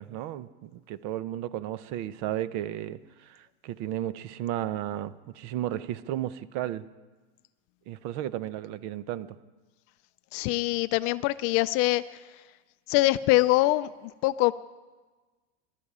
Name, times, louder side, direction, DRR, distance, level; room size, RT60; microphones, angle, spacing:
voice 1, 0.0-6.8 7.9-9.4, right 12 dB, 50° right, 15 dB, 0.8 m, -34 dB
voice 2, 10.3-12.0 12.9-14.5, left 18 dB, 45° left, 15 dB, 0.4 m, -24 dB
23.5 x 12.5 x 4.9 m, 1.3 s
supercardioid pair, 150°, 34 cm